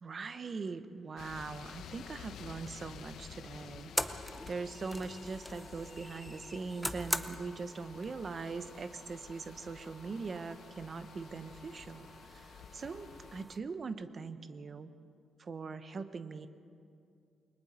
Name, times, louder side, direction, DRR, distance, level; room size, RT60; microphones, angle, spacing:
voice 1, 0.0-3.9 4.5-14.9 15.4-16.5, right 4 dB, 40° right, 10 dB, 1.0 m, -41 dB
sound 1, 1.2-13.4, left 8 dB, 85° left, 0.9 m, -52 dB
sound 2, 3.0-13.6, equal, ahead, 0.8 m, -43 dB
29.0 x 22.5 x 4.4 m, 2.4 s
cardioid pair, 125°, 0 cm